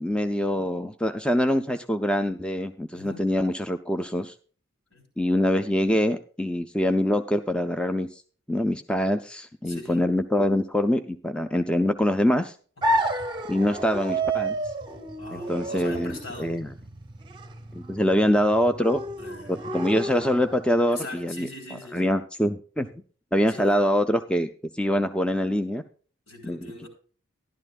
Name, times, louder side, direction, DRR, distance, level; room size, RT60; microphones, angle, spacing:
voice 1, 0.0-4.3 5.2-8.2 8.5-12.5 13.5-14.5 15.3-16.7 17.7-19.0 19.5-21.5 21.9-22.9 23.3-24.5 24.7-25.8 26.4-26.6, left 1 dB, 5° left, 7 dB, 0.5 m, -24 dB
voice 2, 2.9-3.2 4.9-5.0 9.6-10.1 12.8-13.0 15.2-16.5 19.2-19.6 20.9-22.1 23.5-23.8 26.3-26.9, left 2 dB, 75° left, 2 dB, 4.5 m, -41 dB
sound 1, 12.8-20.8, right 1 dB, 20° right, 0.8 m, -31 dB
13.0 x 11.5 x 2.4 m, 0.40 s
head